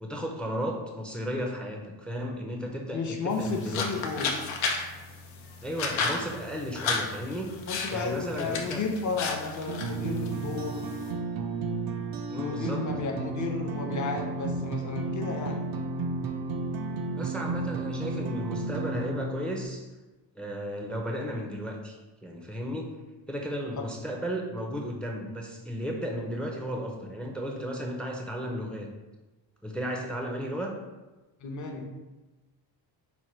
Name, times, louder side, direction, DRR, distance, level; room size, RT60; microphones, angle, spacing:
voice 1, 0.0-3.9 5.6-7.5 7.9-8.8 12.3-12.9 17.1-19.9 20.3-22.9 23.3-28.9 29.6-30.7, equal, ahead, 1 dB, 0.4 m, -34 dB
voice 2, 2.9-4.3 7.7-10.8 12.3-15.6 31.4-31.9, left 4 dB, 40° left, 3 dB, 0.7 m, -33 dB
sound 1, 3.3-11.1, left 4 dB, 90° left, 0.7 m, -34 dB
sound 2, 9.7-19.6, right 3 dB, 50° right, 0.5 m, -33 dB
4.5 x 2.2 x 4.2 m, 1.1 s
cardioid pair, 110°, 46 cm